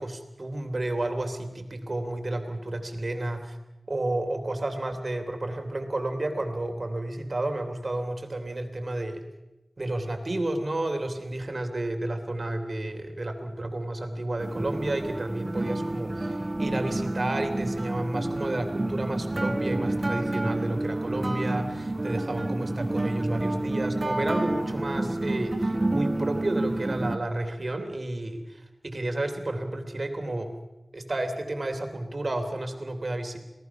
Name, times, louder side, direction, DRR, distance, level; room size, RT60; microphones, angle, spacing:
voice 1, 0.0-3.6 3.9-9.2 9.8-30.6 30.9-33.4, right 1 dB, 50° right, 6 dB, 3.4 m, -31 dB
sound 1, 14.4-27.2, right 2 dB, 30° right, 1.7 m, -29 dB
27.0 x 18.0 x 6.0 m, 0.99 s
wide cardioid pair, 60°, 0 cm